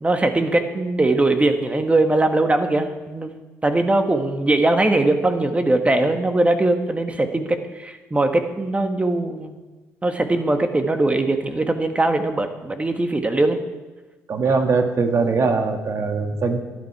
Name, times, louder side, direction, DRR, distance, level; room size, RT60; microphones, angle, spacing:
voice 1, 0.0-3.3 3.6-9.6 10.0-13.6, right 2 dB, 20° right, 6 dB, 1.6 m, -20 dB
voice 2, 14.3-16.6, right 4 dB, 50° right, 5 dB, 1.8 m, -21 dB
13.0 x 11.0 x 4.8 m, 1.2 s
supercardioid pair, 65°, 6 cm